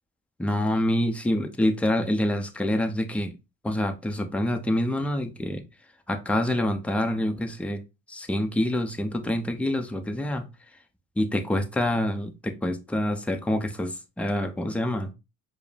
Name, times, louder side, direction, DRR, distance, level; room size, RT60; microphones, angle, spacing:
voice 1, 0.4-3.4 3.6-5.6 6.1-7.8 8.1-10.5 11.2-15.1, left 1 dB, 5° left, 0.5 m, -26 dB
4.7 x 2.1 x 3.2 m
supercardioid pair, 90°, 44 cm